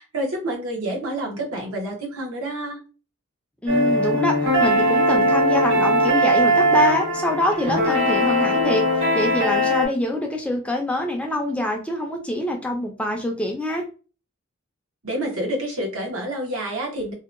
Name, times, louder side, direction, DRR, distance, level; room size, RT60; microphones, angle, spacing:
voice 1, 0.0-2.8 15.0-17.1, right 1 dB, 80° right, 0 dB, 0.9 m, -28 dB
voice 2, 3.6-13.8, left 1 dB, 5° left, 2 dB, 0.3 m, -25 dB
sound 1, 3.7-9.9, equal, 55° right, 1.1 m, -20 dB
2.7 x 2.1 x 2.4 m, 0.34 s
head